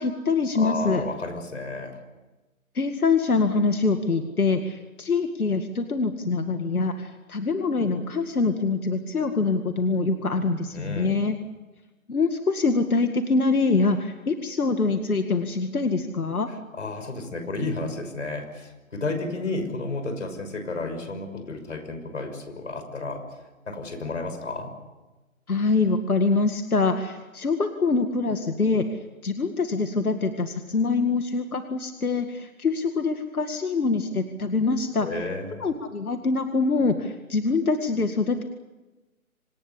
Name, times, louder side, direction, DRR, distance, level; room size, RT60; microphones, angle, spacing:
voice 1, 0.0-1.0 2.7-11.4 12.1-16.5 25.5-28.9 29.2-35.2 35.6-38.5, left 3 dB, 85° left, 6 dB, 2.2 m, -24 dB
voice 2, 0.5-2.0 10.7-11.1 16.7-23.2 23.7-24.7 35.0-35.6, left 2 dB, 55° left, 7 dB, 6.1 m, -32 dB
26.5 x 20.0 x 8.4 m, 1.1 s
hypercardioid pair, 170°, 43 cm